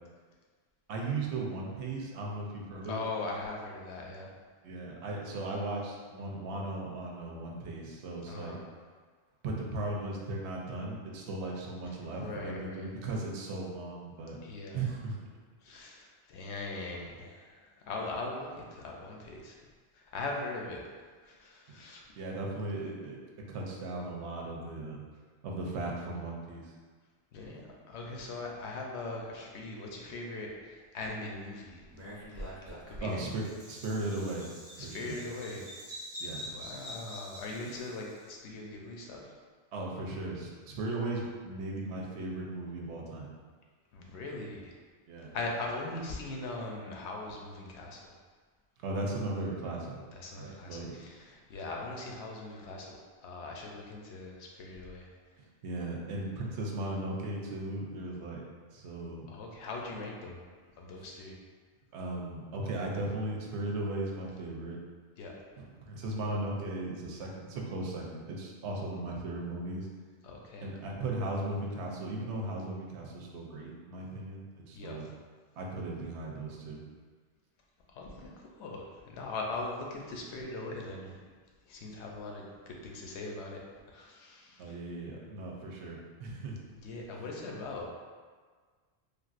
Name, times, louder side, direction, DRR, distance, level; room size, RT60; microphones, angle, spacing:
voice 1, 0.9-3.0 4.6-8.6 9.4-14.4 14.7-15.2 22.2-23.2 23.5-25.0 25.4-26.7 33.0-34.5 34.8-35.2 36.2-36.5 39.7-43.3 45.1-45.3 48.8-50.0 50.4-51.0 55.6-58.4 58.7-59.3 61.9-64.8 65.6-69.9 70.6-75.1 75.6-76.8 84.6-86.6, right 2 dB, 90° right, -1 dB, 0.9 m, -37 dB
voice 2, 2.9-4.3 8.3-8.6 12.0-12.9 14.4-14.8 15.6-19.6 19.9-20.9 21.2-22.0 27.3-31.9 32.3-32.5 32.9-33.3 34.8-35.6 36.4-39.3 43.9-44.7 45.3-48.1 50.1-55.1 59.3-60.4 60.8-61.4 65.2-65.3 70.2-70.7 74.8-75.0 77.9-78.3 78.6-81.2 81.7-83.6 83.9-84.8 86.7-87.9, left 2 dB, 85° left, -1 dB, 0.9 m, -40 dB
Bird vocalization bird call bird song, 31.9-38.2, equal, 20° right, 0.5 m, -45 dB
3.3 x 2.5 x 2.4 m, 1.5 s
omnidirectional pair, 1.1 m